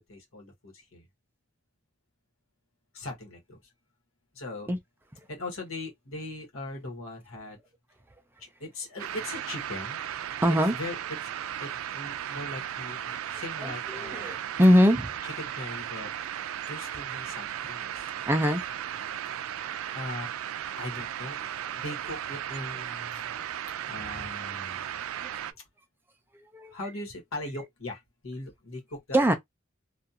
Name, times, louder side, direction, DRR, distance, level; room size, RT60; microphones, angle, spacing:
voice 1, 0.1-1.0 2.9-3.6 4.3-4.7 5.3-7.6 8.4-10.0 10.7-11.0 11.2-11.3 11.6-14.4 15.2-16.1 16.7-18.1 19.4-19.6 19.9-20.3 20.8-21.4 21.7-23.5 23.8-25.0 26.7-29.2, left 2 dB, 85° left, 1.1 m, -40 dB
sound 1, 9.0-25.5, right 10 dB, 80° right, 0.3 m, -36 dB
voice 2, 10.4-10.7 13.6-15.1 18.3-18.6 26.5-26.7 29.1-29.3, equal, 10° right, 0.4 m, -22 dB
2.4 x 2.4 x 2.7 m
head